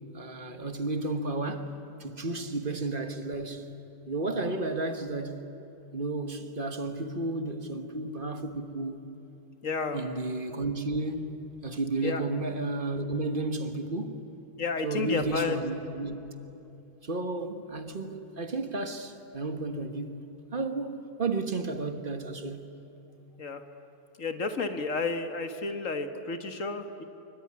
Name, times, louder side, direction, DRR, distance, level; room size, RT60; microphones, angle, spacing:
voice 1, 0.1-3.7 4.1-5.5 5.9-9.0 9.9-14.2 14.8-16.3 17.0-20.2 20.5-22.7, right 2 dB, 35° right, 1.5 m, -32 dB
voice 2, 9.6-10.0 12.0-12.2 14.6-15.6 23.4-23.6 24.2-27.0, left 4 dB, 50° left, 1.8 m, -31 dB
25.0 x 23.5 x 9.7 m
omnidirectional pair, 1.8 m